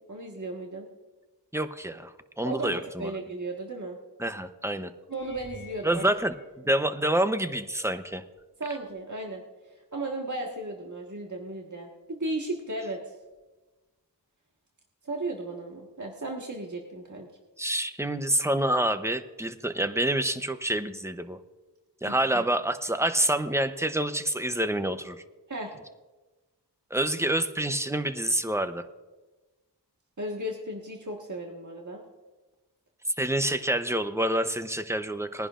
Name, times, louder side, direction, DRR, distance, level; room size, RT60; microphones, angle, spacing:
voice 1, 0.1-0.9 2.4-4.0 5.1-6.1 8.6-9.4 9.7-13.2 15.0-17.3 22.1-22.4 25.5-25.7 30.2-32.0, right 2 dB, 45° right, -1 dB, 1.6 m, -35 dB
voice 2, 1.5-3.1 4.2-4.9 5.8-8.2 17.6-21.4 22.0-25.2 26.9-28.8 33.2-35.5, right 1 dB, 5° right, 9 dB, 0.7 m, -27 dB
sound 1, 5.1-7.4 8.1-8.5 8.9-9.0 13.4-13.5, left 2 dB, 25° left, 1.7 m, -51 dB
21.5 x 10.5 x 2.5 m, 1.2 s
wide cardioid pair, 55°, 42 cm